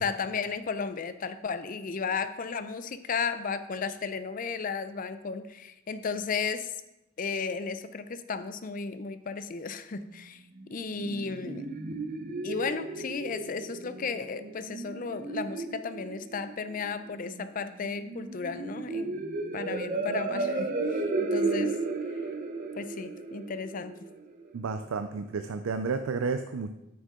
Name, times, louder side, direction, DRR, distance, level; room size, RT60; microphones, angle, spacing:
voice 1, 0.0-6.7 7.2-10.4 10.7-11.7 12.4-19.2 19.5-21.8 22.1-22.2 22.8-23.9, left 5 dB, 40° left, 11 dB, 0.5 m, -34 dB
sound 1, 10.5-24.5, right 3 dB, 40° right, 0.7 m, -34 dB
voice 2, 24.5-26.7, right 4 dB, 90° right, 8 dB, 0.4 m, -31 dB
9.4 x 6.3 x 3.7 m, 0.93 s
head